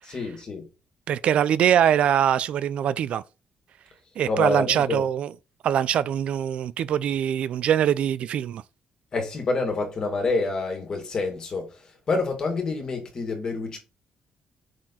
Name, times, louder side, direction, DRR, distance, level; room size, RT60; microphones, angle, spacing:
voice 1, 0.0-0.7 4.3-5.0 9.1-13.8, left 3 dB, 35° left, 2.1 m, -27 dB
voice 2, 1.1-3.2 4.2-5.3 5.6-8.6, right 9 dB, 60° right, 0.3 m, -23 dB
6.2 x 4.3 x 4.1 m
cardioid pair, 160°, 2 cm